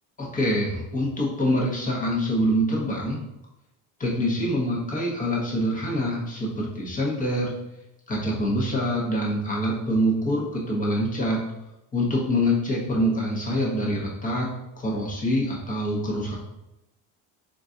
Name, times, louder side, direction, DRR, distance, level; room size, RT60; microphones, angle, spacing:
voice 1, 0.2-3.2 4.0-7.6 8.1-11.4 11.9-14.5 14.8-16.4, equal, 20° left, -3 dB, 0.9 m, -25 dB
3.8 x 2.5 x 3.8 m, 0.91 s
cardioid pair, 140°, 38 cm